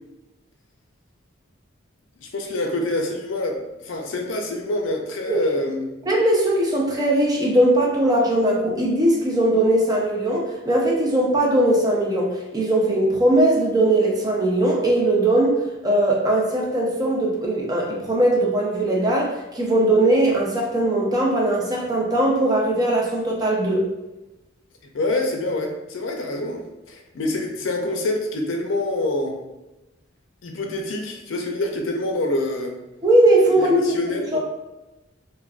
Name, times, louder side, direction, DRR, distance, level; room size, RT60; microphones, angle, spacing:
voice 1, 2.2-5.9 24.9-29.4 30.4-32.7 33.5-34.4, left 2 dB, 70° left, 2 dB, 0.5 m, -26 dB
voice 2, 6.1-15.6 15.8-23.9 33.0-34.0 34.3-34.4, right 1 dB, 20° right, -3 dB, 0.5 m, -19 dB
3.4 x 2.2 x 2.4 m, 1.0 s
head